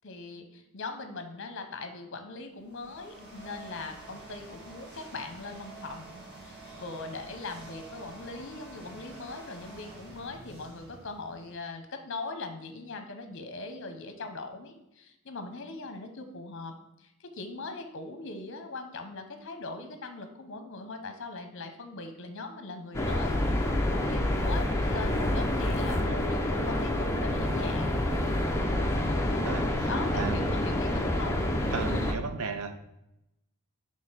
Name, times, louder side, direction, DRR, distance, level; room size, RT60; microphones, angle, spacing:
voice 1, 0.0-16.7 17.0-23.4 23.9-28.3 29.9-31.4 31.7-32.1, left 3 dB, 55° left, 6 dB, 0.8 m, -40 dB
sound 1, 2.5-11.7, right 2 dB, 50° right, 1.8 m, -48 dB
sound 2, 22.9-32.1, left 1 dB, 10° left, 0.5 m, -28 dB
voice 2, 29.4-29.9 30.2-30.4 31.7-32.7, right 4 dB, 75° right, 8 dB, 0.6 m, -34 dB
5.0 x 3.5 x 5.6 m, 0.87 s
head